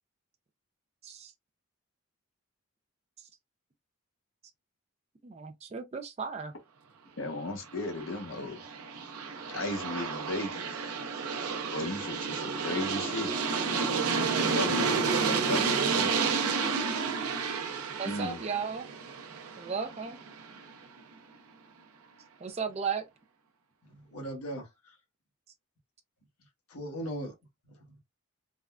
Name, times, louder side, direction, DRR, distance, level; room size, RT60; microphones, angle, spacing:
voice 1, 5.2-6.5 18.0-18.9 19.6-20.2 22.4-23.1, right 6 dB, 30° right, 0.3 m, -35 dB
voice 2, 7.2-8.6 9.5-10.6 11.7-13.3 14.5-16.3 18.0-18.4, left 2 dB, 60° left, 0.8 m, -36 dB
Aircraft, 7.8-20.6, right 5 dB, 85° right, 0.6 m, -31 dB
voice 3, 23.8-25.0 26.7-27.3 27.7-28.0, right 1 dB, 90° left, 1.1 m, -39 dB
3.5 x 2.2 x 2.2 m
head